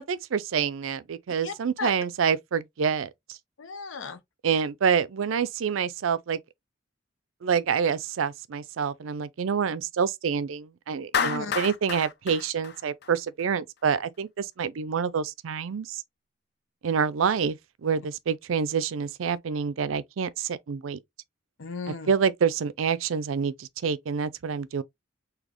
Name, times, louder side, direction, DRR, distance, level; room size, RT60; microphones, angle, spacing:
voice 1, 0.0-3.4 4.4-6.4 7.4-16.0 16.8-17.6 17.8-21.0 22.1-24.8, right 6 dB, 85° right, 0.4 m, -27 dB
voice 2, 1.4-1.9 3.6-4.2 11.1-11.7 21.6-22.1, left 4 dB, 80° left, 0.8 m, -36 dB
Clapping, 11.1-13.4, left 7 dB, 55° left, 0.4 m, -30 dB
4.1 x 2.8 x 2.9 m
head